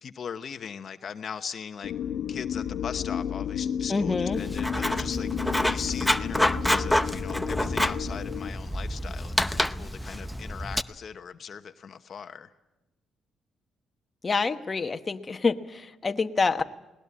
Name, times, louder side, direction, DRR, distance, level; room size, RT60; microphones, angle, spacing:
voice 1, 0.0-1.9 2.3-12.5, left 7 dB, 50° left, 8 dB, 1.0 m, -39 dB
sound 1, 1.8-8.5, left 9 dB, 75° left, 1.2 m, -32 dB
voice 2, 3.9-4.4 14.2-16.6, left 4 dB, 30° left, 7 dB, 1.1 m, -27 dB
Writing, 4.3-10.8, left 1 dB, 5° left, 0.7 m, -28 dB
20.5 x 19.0 x 8.6 m, 1.0 s
cardioid pair, 90°, 0 cm